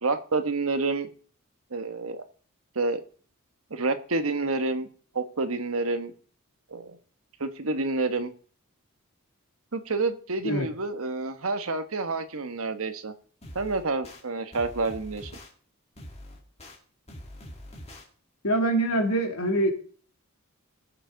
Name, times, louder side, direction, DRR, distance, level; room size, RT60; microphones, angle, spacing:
voice 1, 0.0-1.1 1.7-2.2 2.7-3.0 3.7-4.9 5.1-6.1 6.7-7.0 7.4-8.3 9.7-13.1 13.5-15.3, right 3 dB, 75° right, 9 dB, 1.2 m, -28 dB
sound 1, 13.4-14.2 14.5-15.5 16.0-16.8 17.1-18.0, left 1 dB, 30° left, 2.3 m, -44 dB
voice 2, 18.4-19.7, right 1 dB, 85° left, 3 dB, 2.6 m, -24 dB
20.0 x 7.0 x 3.9 m, 0.43 s
head